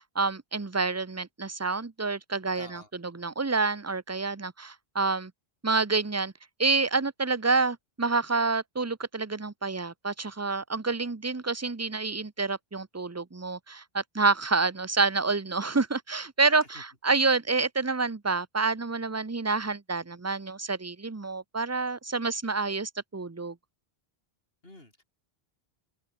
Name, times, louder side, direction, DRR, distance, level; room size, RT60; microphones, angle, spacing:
voice 1, 0.1-5.3 5.6-6.3 6.6-23.6, right 4 dB, 15° right, 0.7 m, -28 dB
voice 2, 2.5-2.9 16.7-16.8 24.6-25.0, left 2 dB, 70° left, 5.1 m, -49 dB
omnidirectional pair, 1.0 m